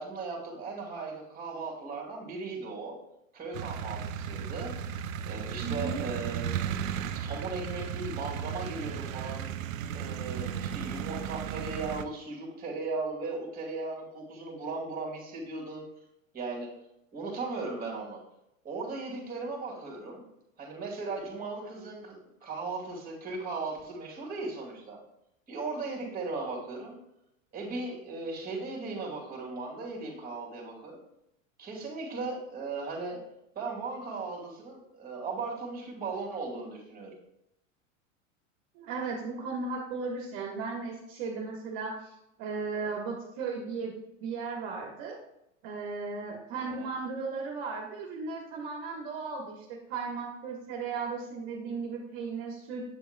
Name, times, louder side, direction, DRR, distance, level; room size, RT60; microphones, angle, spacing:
voice 1, 0.0-3.0 3.3-4.7 5.2-6.6 7.2-9.5 9.9-15.8 16.3-16.7 17.1-18.2 18.6-20.2 20.6-25.0 25.5-27.0 27.5-31.0 31.6-33.2 33.5-37.1 46.5-46.9, right 3 dB, 20° right, -1 dB, 2.5 m, -37 dB
sound 1, 3.5-12.0, right 8 dB, 80° right, 0.6 m, -35 dB
voice 2, 5.6-6.0 38.7-43.9 44.2-45.2 45.6-52.8, right 4 dB, 55° right, -1 dB, 1.4 m, -36 dB
7.8 x 6.9 x 2.2 m, 0.83 s
hypercardioid pair, 105°, 39 cm